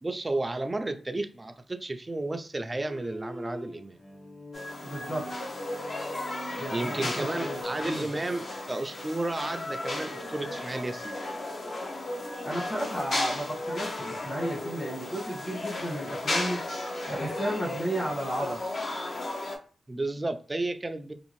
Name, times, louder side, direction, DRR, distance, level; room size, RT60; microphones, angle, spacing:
voice 1, 0.0-4.0 6.7-11.2 19.9-21.1, right 2 dB, 25° right, 0.3 m, -32 dB
Bowed string instrument, 2.7-7.6, equal, 15° left, 0.7 m, -45 dB
sound 1, 4.5-19.6, left 2 dB, 55° left, 0.7 m, -35 dB
voice 2, 4.8-5.2 6.5-8.1 12.4-16.6 17.1-18.6, right 1 dB, 35° left, 1.4 m, -33 dB
2.6 x 2.4 x 3.0 m
wide cardioid pair, 90°, 0 cm